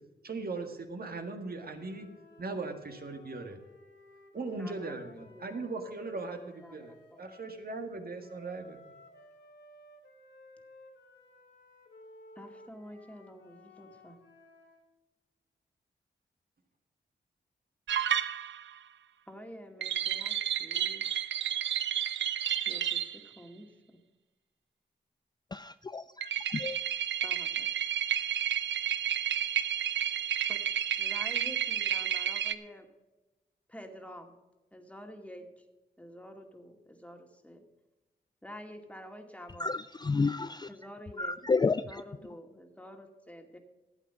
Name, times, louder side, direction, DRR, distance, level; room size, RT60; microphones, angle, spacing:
voice 1, 0.2-2.1 2.4-3.6 4.3-8.8, right 3 dB, 55° right, 5 dB, 1.8 m, -39 dB
sound 1, 1.6-7.6 8.2-14.9, left 2 dB, 75° left, 2.0 m, -55 dB
voice 2, 4.6-5.7 6.4-7.3 12.4-14.2 19.3-21.0 22.7-24.0 27.2-27.7 30.5-30.6 31.0-32.9 33.7-34.3 34.7-35.6 36.0-37.6 38.4-39.7 40.7-41.4 41.7-43.6, equal, 5° left, 4 dB, 2.2 m, -49 dB
sound 2, 17.9-18.7 19.8-23.2 26.2-32.5, right 10 dB, 75° right, 0.6 m, -31 dB
voice 3, 25.5-26.8 39.6-40.7 41.2-42.0, left 4 dB, 20° left, 13 dB, 0.4 m, -31 dB
12.0 x 8.2 x 5.8 m, 1.1 s
supercardioid pair, 40°, 19 cm